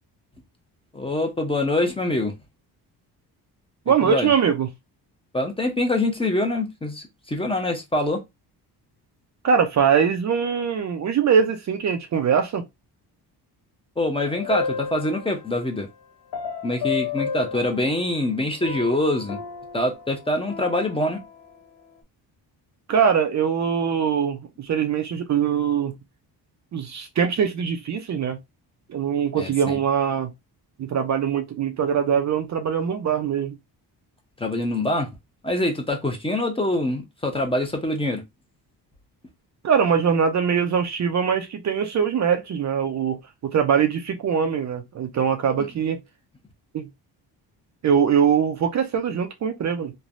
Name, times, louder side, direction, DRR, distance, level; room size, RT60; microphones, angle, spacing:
voice 1, 0.9-2.3 4.0-4.3 5.3-8.2 14.0-15.9 16.6-19.4 19.7-21.2 29.4-29.8 34.4-35.1 35.4-38.2 45.6-45.7, left 1 dB, 15° left, 0.7 m, -24 dB
voice 2, 3.9-4.7 9.4-12.6 22.9-25.9 26.7-28.4 28.9-30.3 30.8-33.6 39.6-46.0 46.7-46.9 47.8-49.9, right 7 dB, 45° right, 0.5 m, -22 dB
sound 1, 14.3-15.7 16.3-18.3 18.6-21.6, left 7 dB, 70° left, 1.5 m, -33 dB
3.2 x 2.2 x 2.5 m
cardioid pair, 110°, 41 cm